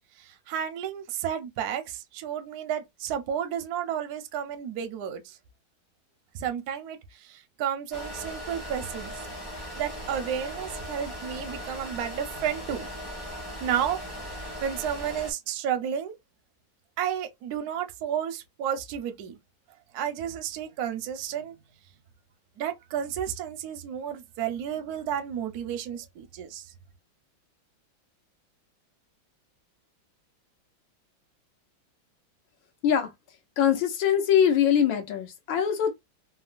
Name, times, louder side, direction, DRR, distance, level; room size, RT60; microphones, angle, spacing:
voice 1, 0.2-5.4 6.3-9.1 9.8-12.9 13.6-14.0 14.6-16.1 17.0-19.4 19.9-21.5 22.6-26.7, right 9 dB, 70° right, 0.9 m, -32 dB
sound 1, 7.9-15.3, equal, 25° left, 0.5 m, -38 dB
voice 2, 33.6-35.9, left 9 dB, 80° left, 1.5 m, -23 dB
3.6 x 2.1 x 2.4 m
omnidirectional pair, 2.2 m